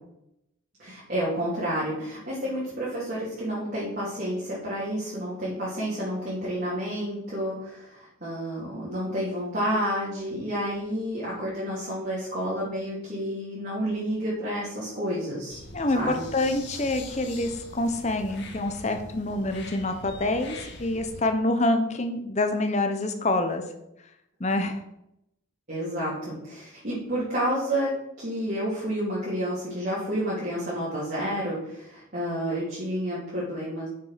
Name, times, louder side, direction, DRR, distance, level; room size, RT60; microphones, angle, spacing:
voice 1, 0.8-15.6 15.9-16.2 25.7-33.9, equal, 45° right, -10 dB, 3.2 m, -30 dB
sound 1, 15.5-21.2, left 2 dB, 55° left, 1.6 m, -43 dB
voice 2, 15.7-23.6 24.4-24.8, left 2 dB, 35° left, 7 dB, 0.9 m, -26 dB
6.9 x 6.8 x 5.9 m, 0.83 s
head